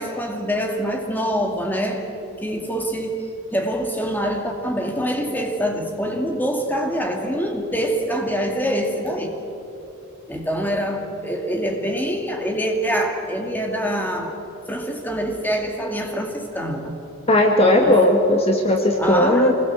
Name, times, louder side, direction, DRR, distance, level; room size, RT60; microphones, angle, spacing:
voice 1, 0.0-2.0 2.4-3.3 3.5-9.4 10.3-14.4 14.7-17.0 17.8-18.0 19.0-19.5, equal, 10° left, 3 dB, 2.3 m, -25 dB
voice 2, 17.3-19.5, left 1 dB, 30° left, 2 dB, 1.7 m, -16 dB
25.5 x 20.5 x 8.0 m, 2.8 s
head